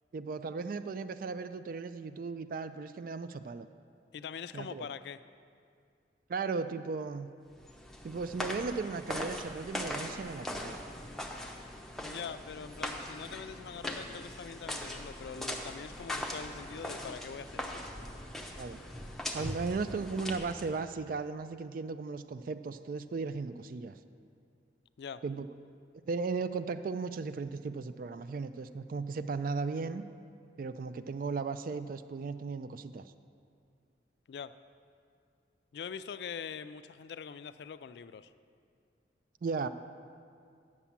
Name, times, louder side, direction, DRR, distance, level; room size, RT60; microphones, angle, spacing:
voice 1, 0.1-3.7 4.5-4.9 6.3-7.3 8.0-10.8 18.6-18.8 19.3-24.0 25.2-25.5 26.1-30.0 30.6-33.0 39.4-39.7, right 4 dB, 50° right, 11 dB, 0.3 m, -36 dB
voice 2, 4.1-5.2 12.0-17.8 25.0-25.2 34.3-34.5 35.7-38.3, left 6 dB, 65° left, 13 dB, 0.3 m, -43 dB
sound 1, 7.5-20.8, left 1 dB, ahead, 0.7 m, -40 dB
9.6 x 7.0 x 7.3 m, 2.4 s
head